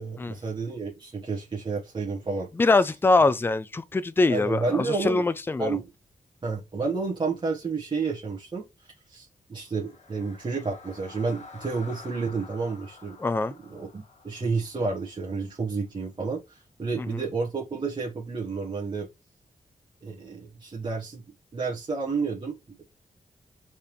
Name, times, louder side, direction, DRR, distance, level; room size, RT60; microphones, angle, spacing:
voice 1, 0.0-2.5 4.3-5.2 5.6-5.9 6.4-13.2 13.7-19.1 20.0-21.2 21.5-22.8, right 4 dB, 35° right, 1.2 m, -30 dB
voice 2, 2.6-5.8 13.2-13.5 17.0-17.2, left 3 dB, 15° left, 0.4 m, -23 dB
sound 1, 9.7-15.8, left 4 dB, 55° left, 1.1 m, -49 dB
4.5 x 3.5 x 3.0 m
wide cardioid pair, 110°, 14 cm